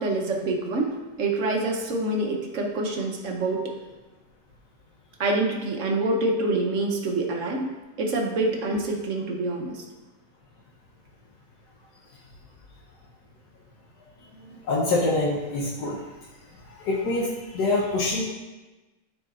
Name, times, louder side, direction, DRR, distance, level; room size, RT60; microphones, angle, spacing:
voice 1, 0.0-3.7 5.2-7.7 8.0-9.8, right 2 dB, 60° right, 1 dB, 1.0 m, -26 dB
voice 2, 14.4-16.0 16.7-18.2, left 2 dB, 85° left, -4 dB, 1.4 m, -25 dB
12.0 x 4.0 x 2.4 m, 1.2 s
omnidirectional pair, 1.7 m